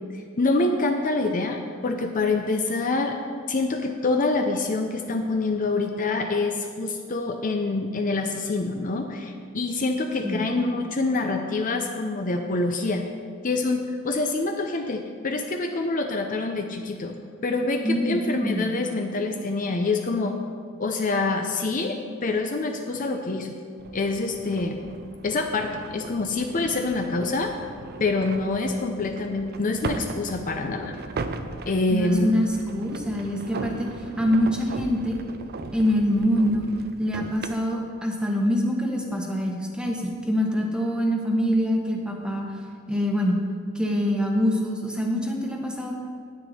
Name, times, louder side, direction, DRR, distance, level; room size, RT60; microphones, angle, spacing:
voice 1, 0.4-3.1 3.5-13.0 13.4-17.1 17.4-20.3 20.8-22.0 22.2-23.5 23.9-24.8 25.2-27.5 28.0-30.9 31.7-32.4, left 3 dB, 40° left, 4 dB, 0.6 m, -26 dB
voice 2, 17.8-18.6 31.9-33.9 34.2-35.2 35.7-36.6 37.0-42.5 42.9-43.4 43.7-45.9, equal, 5° right, 0 dB, 1.1 m, -25 dB
sound 1, 23.8-37.6, right 3 dB, 50° right, 0.5 m, -38 dB
9.8 x 9.3 x 4.3 m, 2.1 s
head